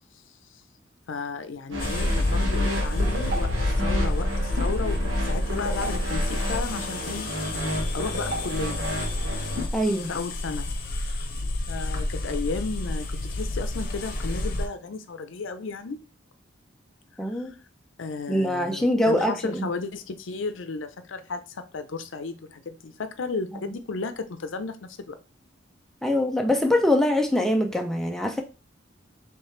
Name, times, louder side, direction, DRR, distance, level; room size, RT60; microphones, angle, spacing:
voice 1, 1.1-7.3 7.9-8.8 10.1-16.0 17.3-17.5 18.0-25.2, left 4 dB, 85° left, 10 dB, 0.6 m, -34 dB
sound 1, 1.7-9.7, equal, 85° right, 1.6 m, -32 dB
sound 2, 1.8-14.7, left 1 dB, 50° left, 0.8 m, -28 dB
voice 2, 9.7-10.1 17.2-17.6 18.3-19.7 26.0-28.4, left 1 dB, ahead, 3 dB, 0.5 m, -23 dB
4.8 x 3.3 x 3.2 m, 0.33 s
head